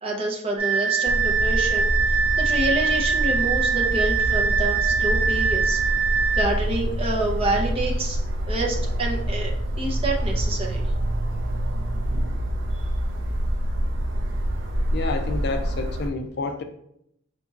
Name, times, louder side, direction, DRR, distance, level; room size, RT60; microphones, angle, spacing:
voice 1, 0.0-5.8 6.3-8.2 8.5-9.5 9.8-10.8, right 2 dB, 30° right, -1 dB, 0.7 m, -27 dB
sound 1, 0.6-6.4, right 6 dB, 15° left, 0.9 m, -23 dB
sound 2, 1.1-16.1, right 1 dB, 60° right, 0.5 m, -26 dB
voice 2, 14.9-16.6, left 3 dB, 50° left, 6 dB, 0.4 m, -29 dB
4.4 x 4.0 x 2.4 m, 0.73 s
head